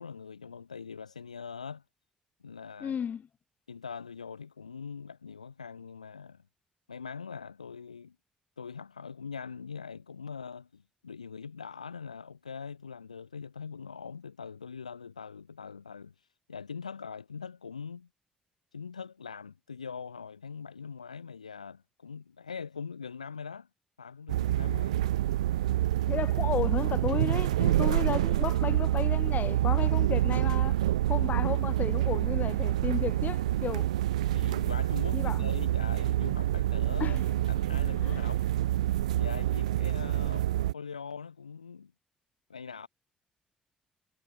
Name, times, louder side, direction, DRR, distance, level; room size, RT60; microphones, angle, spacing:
voice 1, 0.0-1.8 2.4-3.0 3.7-6.4 6.9-8.1 8.6-16.1 16.5-18.1 18.7-23.7 24.0-25.1 34.3-37.2 37.5-38.4 39.1-41.9 42.5-42.9, left 6 dB, 85° left, 2.9 m, -42 dB
voice 2, 2.8-3.2 26.0-30.8 31.1-33.9 35.1-35.5 37.0-37.3 38.0-38.2, left 8 dB, 50° left, 5.9 m, -33 dB
sound 1, 24.3-40.7, right 14 dB, 80° right, 0.6 m, -27 dB
figure-of-eight pair, 40°, 4 cm